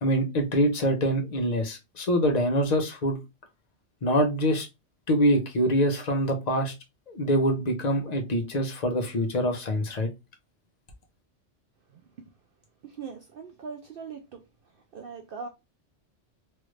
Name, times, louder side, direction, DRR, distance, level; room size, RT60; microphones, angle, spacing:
voice 1, 0.0-3.2 4.0-4.7 5.1-6.7 7.1-10.1, equal, 40° left, 0.8 m, -25 dB
voice 2, 12.8-14.4 14.9-15.5, right 5 dB, 60° right, 0.6 m, -40 dB
3.2 x 2.5 x 3.1 m
omnidirectional pair, 1.3 m